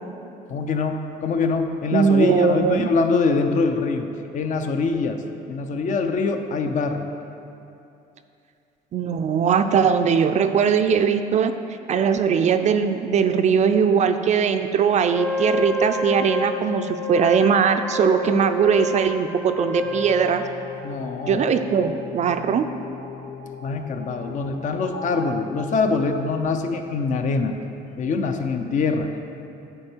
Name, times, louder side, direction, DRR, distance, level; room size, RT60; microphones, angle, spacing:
voice 1, 0.5-4.1 4.3-7.1 20.8-21.4 23.6-27.5 28.0-29.1, left 4 dB, 50° left, 6 dB, 0.6 m, -24 dB
voice 2, 1.9-2.9 8.9-11.5 11.9-20.4 21.3-22.6, right 6 dB, 45° right, 9 dB, 0.4 m, -20 dB
Wind instrument woodwind instrument, 15.1-20.7, left 2 dB, 15° left, 0.7 m, -29 dB
sound 1, 19.8-26.3, left 5 dB, 85° left, 1.0 m, -39 dB
9.8 x 4.5 x 4.5 m, 2.7 s
cardioid pair, 110°, 17 cm